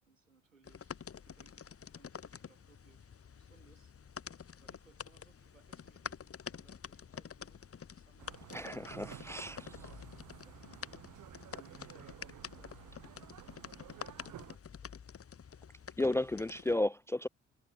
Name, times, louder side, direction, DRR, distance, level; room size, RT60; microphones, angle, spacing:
voice 1, 0.0-14.6, right 4 dB, 85° right, 4.6 m, -68 dB
sound 1, 0.6-16.8, left 7 dB, 35° left, 3.1 m, -48 dB
sound 2, 8.2-14.6, right 13 dB, 55° right, 2.8 m, -53 dB
voice 2, 8.5-9.6 16.0-17.3, left 1 dB, 10° left, 0.3 m, -33 dB
figure-of-eight pair, 45°, 38 cm